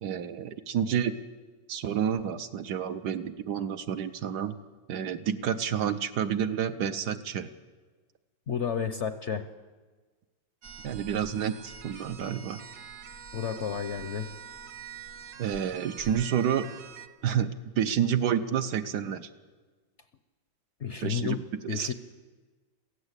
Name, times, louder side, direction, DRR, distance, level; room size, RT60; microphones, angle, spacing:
voice 1, 0.0-1.1 1.7-4.6 4.9-7.5 10.8-12.6 15.4-16.7 17.2-19.3 21.0-21.9, right 8 dB, 70° right, 9 dB, 1.4 m, -29 dB
voice 2, 8.5-9.5 13.3-14.3 20.8-21.4 21.7-21.9, left 7 dB, 55° left, 10 dB, 0.9 m, -31 dB
sound 1, 10.6-17.1, right 7 dB, 50° right, 1.2 m, -45 dB
22.5 x 15.5 x 8.2 m, 1.4 s
omnidirectional pair, 1.9 m